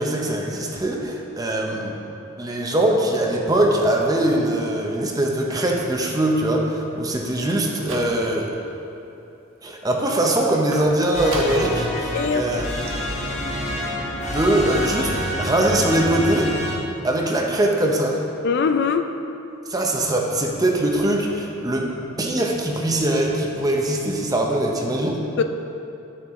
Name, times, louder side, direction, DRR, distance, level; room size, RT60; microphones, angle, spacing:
voice 1, 0.0-2.0 2.4-8.5 9.6-12.8 14.3-16.5 17.0-18.2 19.7-21.9 22.2-25.2, right 1 dB, 15° right, 0 dB, 0.7 m, -22 dB
sound 1, 7.4-8.5 8.9-9.4 10.7-11.8 12.2-12.3 12.5-12.6 12.9-13.0, right 2 dB, 70° right, 1.2 m, -35 dB
sound 2, 11.1-16.8, equal, 35° left, 1.1 m, -27 dB
voice 2, 12.1-12.6 18.4-19.1 25.4-25.5, left 5 dB, 50° left, 7 dB, 0.4 m, -22 dB
10.5 x 6.8 x 3.7 m, 2.8 s
head